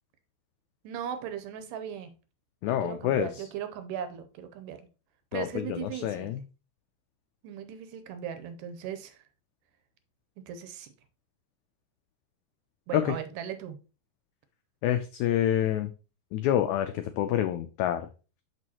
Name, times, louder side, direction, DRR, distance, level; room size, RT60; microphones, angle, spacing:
voice 1, 0.8-2.1 2.7-4.9 5.3-6.3 7.4-9.2 10.5-10.9 12.9-13.8, right 9 dB, 80° right, 2.2 m, -38 dB
voice 2, 2.6-3.3 5.3-6.4 12.9-13.0 14.8-15.9 16.3-18.1, left 11 dB, 85° left, 1.7 m, -27 dB
6.2 x 6.0 x 2.9 m
omnidirectional pair, 3.9 m